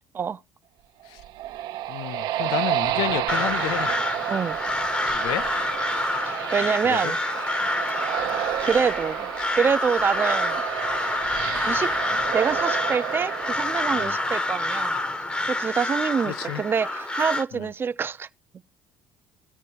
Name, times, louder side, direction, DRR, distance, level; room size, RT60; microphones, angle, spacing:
sound 1, 1.0-14.6, right 13 dB, 75° right, 0.5 m, -31 dB
voice 1, 1.9-4.0 5.1-5.5 6.8-7.1 7.6-7.7 13.9-14.2 16.3-16.6 17.5-17.7, left 14 dB, 80° left, 0.4 m, -31 dB
Crow, 3.3-17.4, left 2 dB, 15° left, 0.8 m, -27 dB
voice 2, 6.3-7.2 7.8-8.0 8.6-10.6 11.6-11.9 12.3-15.0 15.4-18.3, right 6 dB, 30° right, 0.5 m, -26 dB
18.5 x 6.5 x 2.7 m
cardioid pair, 110°, 7 cm